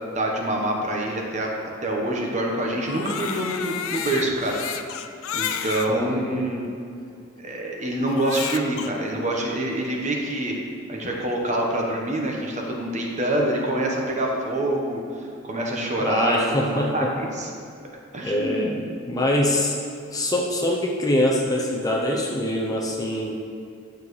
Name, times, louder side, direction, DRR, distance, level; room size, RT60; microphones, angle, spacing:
voice 1, 0.1-1.5 1.8-4.6 5.3-6.6 7.4-10.5 10.9-17.5 18.1-18.8, right 1 dB, 35° right, -1 dB, 1.1 m, -26 dB
Crying sobbing, 2.8-5.9 6.6-6.7 8.1-8.9, left 8 dB, 75° left, 0.5 m, -31 dB
voice 2, 5.9-6.5 16.0-17.1 18.2-18.7 19.1-19.8 20.1-23.4, left 1 dB, 15° left, -1 dB, 0.6 m, -24 dB
11.0 x 7.0 x 3.2 m, 2.4 s
head